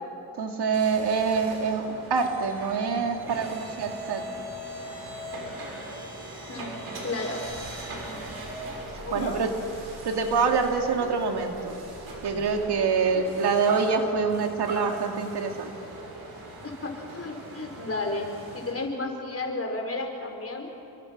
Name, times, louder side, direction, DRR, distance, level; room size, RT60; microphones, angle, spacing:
voice 1, 0.4-4.2 9.1-9.5 10.0-11.8 12.2-15.7, right 5 dB, 90° right, 3 dB, 2.5 m, -26 dB
sound 1, 0.7-18.7, right 1 dB, 70° right, 6.4 m, -40 dB
voice 2, 7.0-7.5 9.0-9.4 13.1-13.2 16.6-18.3 18.5-20.7, left 2 dB, 40° left, 2 dB, 4.8 m, -32 dB
29.0 x 24.5 x 6.1 m, 2.8 s
cardioid pair, 85°, 38 cm